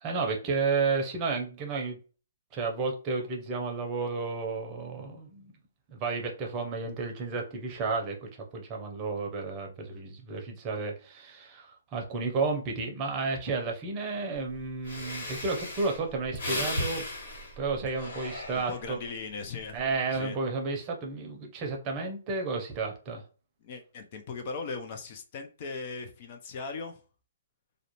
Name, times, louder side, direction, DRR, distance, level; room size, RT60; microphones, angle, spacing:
voice 1, 0.0-2.0 2.5-5.5 5.9-17.1 17.6-19.0 19.7-23.2, right 4 dB, 25° right, 2 dB, 0.7 m, -32 dB
Breathing, 14.5-14.6 14.8-19.1 19.6-19.9, left 1 dB, 70° left, 1.3 m, -36 dB
voice 2, 18.5-19.8 20.1-20.4 23.6-27.0, left 4 dB, 40° left, 5 dB, 0.5 m, -38 dB
2.4 x 2.0 x 2.9 m, 0.37 s
hypercardioid pair, 145°, 0 cm